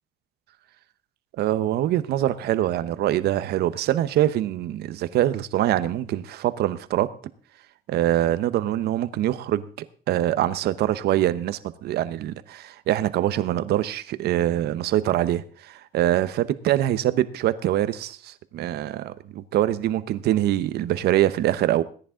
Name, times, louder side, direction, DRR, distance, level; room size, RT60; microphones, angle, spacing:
voice 1, 1.4-7.1 7.9-9.6 10.1-21.8, right 13 dB, 70° right, 0.9 m, -24 dB
19.0 x 10.0 x 3.8 m
cardioid pair, 110°, 17 cm